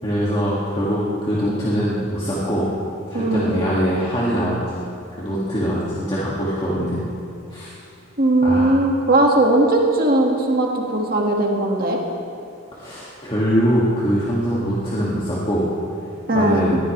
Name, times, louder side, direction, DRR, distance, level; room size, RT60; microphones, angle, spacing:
voice 1, 0.0-2.7 3.1-4.6 5.2-7.0 7.5-7.7 8.4-8.8 12.7-15.6 16.3-16.8, equal, 25° left, -8 dB, 2.4 m, -22 dB
voice 2, 3.1-3.6 8.2-12.0 16.3-16.7, right 1 dB, 45° right, 0 dB, 2.1 m, -18 dB
21.5 x 15.5 x 3.4 m, 2.5 s
head